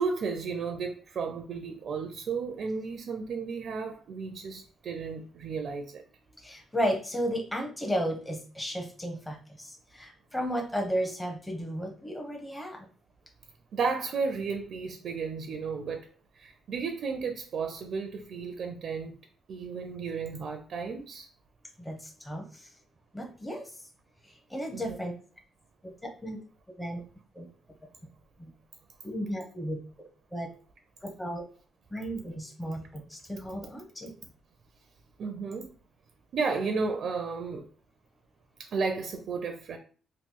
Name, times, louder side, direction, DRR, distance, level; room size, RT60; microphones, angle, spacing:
voice 1, 0.0-6.0 13.7-16.1 16.3-19.2 19.5-21.3 24.7-25.0 35.2-35.7 36.3-37.7 38.7-39.8, right 5 dB, 60° right, 5 dB, 0.5 m, -33 dB
voice 2, 6.4-12.8 21.8-22.8 23.1-23.9 24.2-25.1 25.8-26.4 26.8-27.0 27.3-27.5 28.4-28.5 29.0-30.5 31.0-31.4 31.9-34.1, equal, 10° left, 1 dB, 0.8 m, -34 dB
3.1 x 2.2 x 3.7 m, 0.40 s
cardioid pair, 90°, 0 cm